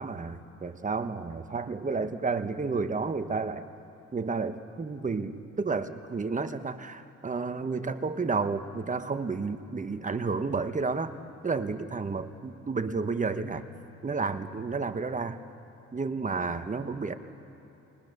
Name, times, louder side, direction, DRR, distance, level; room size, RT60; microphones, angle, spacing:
voice 1, 0.0-3.7 4.1-11.1 11.4-13.6 14.0-15.4 15.9-17.1, right 4 dB, 25° right, 9 dB, 1.1 m, -31 dB
29.0 x 22.0 x 6.7 m, 2.9 s
cardioid pair, 90°, 30 cm